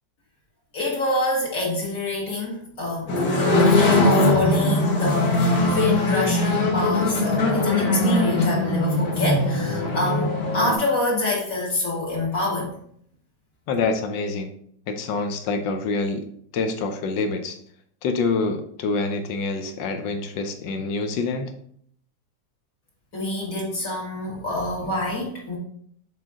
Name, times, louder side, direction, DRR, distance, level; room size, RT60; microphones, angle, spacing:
voice 1, 0.7-10.3 10.5-12.8 23.1-25.6, left 2 dB, 50° left, -4 dB, 2.2 m, -26 dB
sound 1, 3.1-10.8, left 2 dB, 70° left, 1.9 m, -21 dB
voice 2, 13.7-14.5 14.9-16.2 16.5-17.6 18.0-21.5, left 3 dB, 90° left, 7 dB, 1.4 m, -26 dB
6.4 x 4.2 x 3.6 m, 0.64 s
omnidirectional pair, 1.9 m